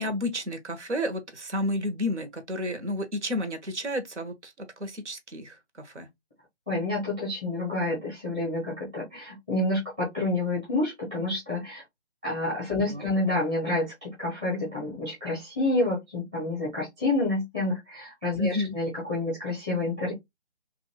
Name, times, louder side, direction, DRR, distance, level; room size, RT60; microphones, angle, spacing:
voice 1, 0.0-6.1 12.7-13.1 18.4-18.8, left 1 dB, 90° right, 1.1 m, -31 dB
voice 2, 6.7-11.8 12.2-20.1, left 2 dB, 5° right, 0.7 m, -28 dB
2.6 x 2.5 x 2.8 m
figure-of-eight pair, 160°, 34 cm